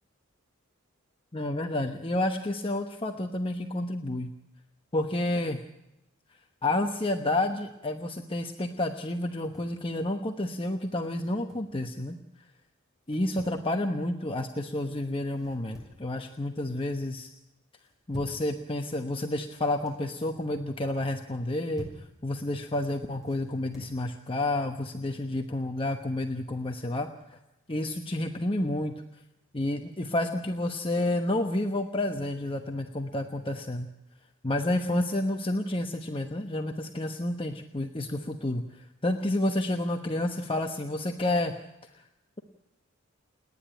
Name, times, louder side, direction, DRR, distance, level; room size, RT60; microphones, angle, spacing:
voice 1, 1.3-4.3 4.9-5.6 6.6-12.2 13.1-17.3 18.1-27.4 27.7-29.2 29.5-33.9 34.4-42.0, left 1 dB, 25° left, 4 dB, 1.1 m, -30 dB
sound 1, 9.3-9.8 11.1-11.8 13.0-13.6 15.3-16.1 16.5-16.9 17.8-18.5 19.5-20.0 21.3-22.1 23.2-24.0, right 1 dB, ahead, 6.1 m, -48 dB
29.5 x 10.5 x 9.0 m, 0.93 s
head